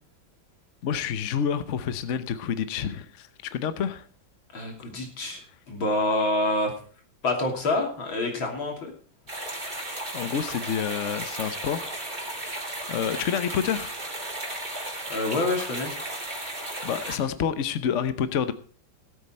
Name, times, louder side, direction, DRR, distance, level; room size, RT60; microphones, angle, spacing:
voice 1, 0.8-4.1 10.1-12.3 12.9-14.0 16.8-18.5, left 8 dB, 50° left, 12 dB, 0.9 m, -28 dB
voice 2, 4.5-5.4 5.7-6.7 7.2-8.9 15.1-16.0, left 2 dB, 80° left, 2 dB, 3.7 m, -27 dB
sound 1, 9.3-17.2, right 1 dB, 25° right, 2.7 m, -35 dB
17.0 x 8.5 x 4.4 m, 0.42 s
omnidirectional pair, 2.2 m